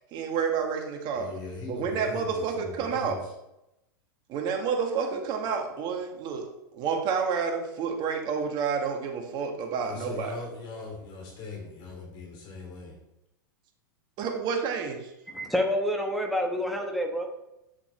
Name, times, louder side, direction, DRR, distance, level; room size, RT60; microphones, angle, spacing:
voice 1, 0.1-1.3 1.7-3.2 4.3-10.4 14.2-15.1, right 6 dB, 40° right, 3 dB, 1.8 m, -29 dB
voice 2, 1.1-3.2 9.8-12.9, left 4 dB, 45° left, -1 dB, 2.8 m, -40 dB
voice 3, 15.3-17.3, equal, ahead, 1 dB, 1.3 m, -28 dB
8.8 x 7.2 x 3.4 m, 0.88 s
hypercardioid pair, 110°, 12 cm